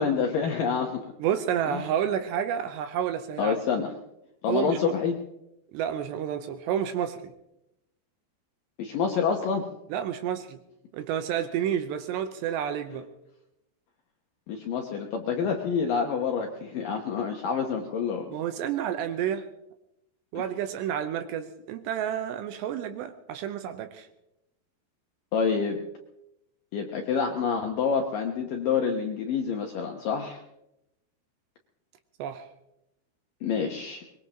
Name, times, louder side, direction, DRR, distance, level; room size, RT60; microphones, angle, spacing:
voice 1, 0.0-1.1 1.7-1.8 3.4-3.9 4.4-5.2 8.8-9.7 14.5-18.3 20.3-20.4 25.3-25.8 26.7-30.4 33.4-34.0, left 6 dB, 70° left, 2 dB, 2.1 m, -27 dB
voice 2, 1.2-3.5 4.5-4.9 5.7-7.3 9.9-10.6 10.9-13.1 18.3-19.5 20.3-24.1 32.2-32.5, right 9 dB, 80° right, 8 dB, 2.9 m, -30 dB
23.0 x 21.0 x 3.0 m, 0.85 s
omnidirectional pair, 5.2 m